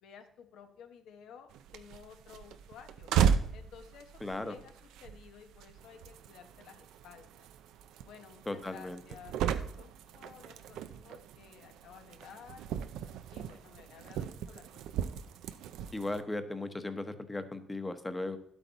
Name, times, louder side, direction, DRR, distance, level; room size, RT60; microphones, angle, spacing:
voice 1, 0.0-3.1 3.5-7.5 8.0-12.7 13.3-15.1, left 7 dB, 85° left, 6 dB, 1.1 m, -54 dB
sound 1, 1.5-16.2, right 8 dB, 90° right, 0.5 m, -36 dB
voice 2, 4.2-4.6 8.5-9.0 15.9-18.4, left 2 dB, 15° left, 9 dB, 1.0 m, -37 dB
11.0 x 8.2 x 4.1 m, 0.67 s
cardioid pair, 90°, 0 cm